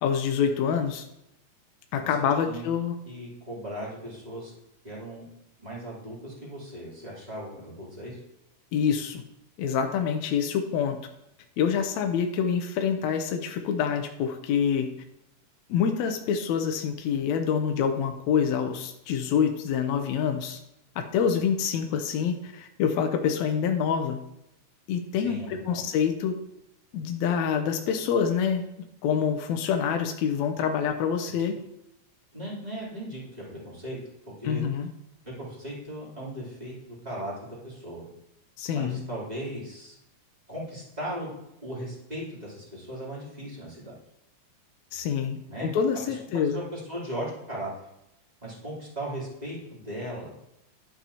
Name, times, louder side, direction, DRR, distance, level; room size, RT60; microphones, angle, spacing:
voice 1, 0.0-1.0 1.9-3.0 8.7-9.2 9.6-11.0 11.6-14.9 15.7-20.6 21.0-24.2 24.9-26.4 26.9-28.6 29.0-31.6 34.4-34.9 38.6-39.0 44.9-46.6, left 7 dB, 75° left, 5 dB, 1.9 m, -26 dB
voice 2, 3.0-4.5 4.8-5.2 5.6-8.2 25.2-25.8 31.4-31.5 32.3-34.0 34.4-34.6 35.3-38.1 38.7-39.9 40.5-41.3 41.6-43.9 45.5-45.7 46.1-47.7 48.4-50.3, right 1 dB, 15° right, -7 dB, 3.3 m, -37 dB
11.5 x 6.9 x 2.9 m, 0.86 s
omnidirectional pair, 3.5 m